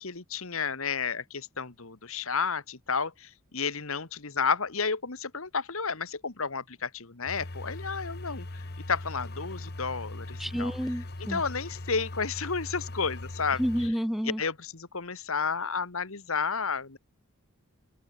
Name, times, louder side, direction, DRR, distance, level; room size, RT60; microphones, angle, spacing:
voice 1, 0.0-10.7 11.2-13.6 14.2-17.0, left 5 dB, 70° left, 1.7 m, -32 dB
sound 1, 7.3-13.9, left 2 dB, 45° left, 1.4 m, -40 dB
voice 2, 10.4-11.4 13.6-14.4, equal, ahead, 1.0 m, -30 dB
open air
head